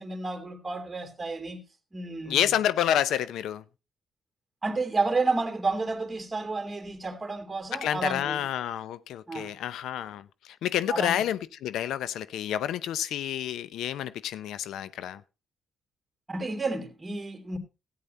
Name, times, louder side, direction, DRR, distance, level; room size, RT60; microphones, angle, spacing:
voice 1, 0.0-1.6 1.9-2.6 4.6-8.5 9.3-9.5 10.9-11.2 16.3-17.6, right 3 dB, 20° right, 2.7 m, -31 dB
voice 2, 2.3-3.6 7.7-10.2 10.6-15.2, left 11 dB, 80° left, 0.6 m, -29 dB
14.0 x 9.6 x 4.2 m
cardioid pair, 90°, 0 cm